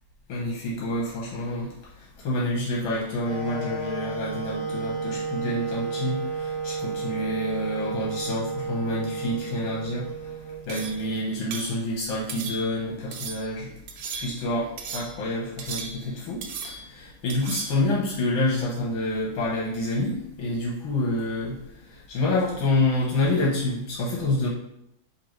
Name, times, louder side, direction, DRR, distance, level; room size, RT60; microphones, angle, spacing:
voice 1, 0.3-1.7 2.2-10.1 10.7-13.7 14.2-21.6 22.1-24.5, left 1 dB, 85° left, -5 dB, 1.8 m, -27 dB
Wind instrument woodwind instrument, 3.2-11.2, right 4 dB, 5° left, 1.4 m, -32 dB
sound 1, 10.7-11.1 11.5-11.8 12.3-12.8 13.1-13.5 13.9-14.5 14.8-15.2 15.6-16.2 16.4-16.9 17.3-17.8, right 5 dB, 85° right, 1.4 m, -36 dB
4.3 x 2.7 x 4.5 m, 0.79 s
omnidirectional pair, 2.2 m